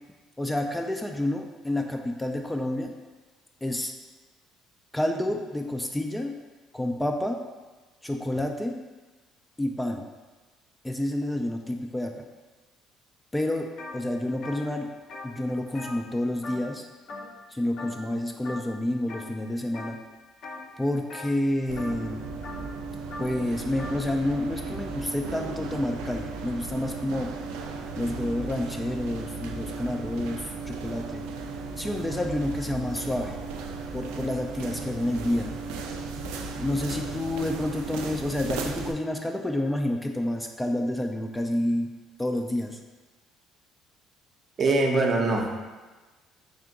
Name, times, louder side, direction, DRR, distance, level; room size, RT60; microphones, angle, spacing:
voice 1, 0.4-2.9 3.6-3.9 4.9-6.3 6.7-7.4 8.0-8.8 9.6-10.1 10.8-12.1 13.3-13.7 13.9-14.9 15.2-16.8 17.5-20.0 20.8-22.2 23.2-27.3 28.0-31.2 31.8-33.4 33.9-35.5 36.6-41.9 42.2-42.8, left 1 dB, 10° left, 3 dB, 0.3 m, -29 dB
sound 1, 13.8-14.0 14.3-16.8 17.1-17.5 17.8-18.1 18.4-19.3 19.7-20.1 20.4-24.0, left 2 dB, 60° left, 0.7 m, -41 dB
sound 2, 21.7-38.9, right 4 dB, 85° right, 0.3 m, -36 dB
voice 2, 44.6-45.6, right 2 dB, 45° right, 1 dB, 0.6 m, -23 dB
3.7 x 2.5 x 3.7 m, 1.3 s
supercardioid pair, 70°, 0 cm